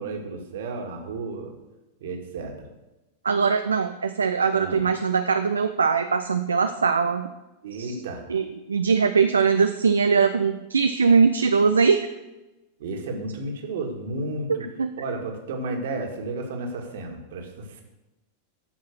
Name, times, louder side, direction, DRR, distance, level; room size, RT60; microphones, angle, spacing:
voice 1, 0.0-1.5 2.0-2.5 4.5-4.8 7.6-8.2 12.8-14.7 15.0-17.8, right 2 dB, 60° right, 3 dB, 2.0 m, -32 dB
voice 2, 3.2-7.3 7.8-7.9 8.3-12.1 14.5-14.9, right 5 dB, 75° right, 8 dB, 0.5 m, -21 dB
14.0 x 5.7 x 6.4 m, 1.0 s
figure-of-eight pair, 90°, 0 cm